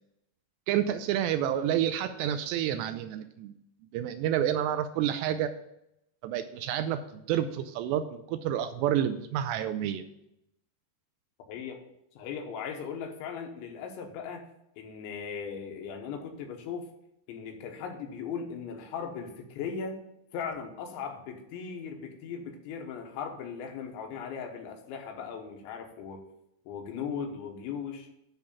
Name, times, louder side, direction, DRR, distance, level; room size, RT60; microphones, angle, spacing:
voice 1, 0.7-3.5 3.9-5.5 6.2-10.0, right 10 dB, 85° right, 10 dB, 2.6 m, -29 dB
voice 2, 11.5-11.8 12.2-14.5 14.8-16.9 17.3-20.0 20.3-26.2 26.7-28.1, left 6 dB, 90° left, 3 dB, 3.5 m, -38 dB
9.9 x 3.9 x 7.1 m, 0.81 s
omnidirectional pair, 5.2 m